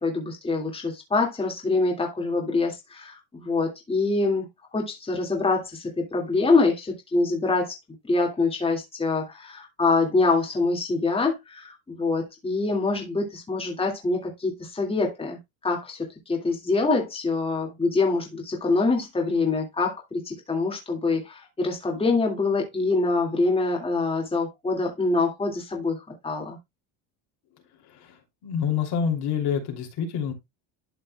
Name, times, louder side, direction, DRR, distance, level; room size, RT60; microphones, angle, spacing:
voice 1, 0.0-4.5 4.7-7.8 8.1-15.4 15.6-16.0 16.3-26.0 26.2-26.6, left 3 dB, 10° left, 2.1 m, -25 dB
voice 2, 28.4-30.3, left 7 dB, 55° left, 2.9 m, -27 dB
12.0 x 5.5 x 2.2 m
cardioid pair, 140°, 46 cm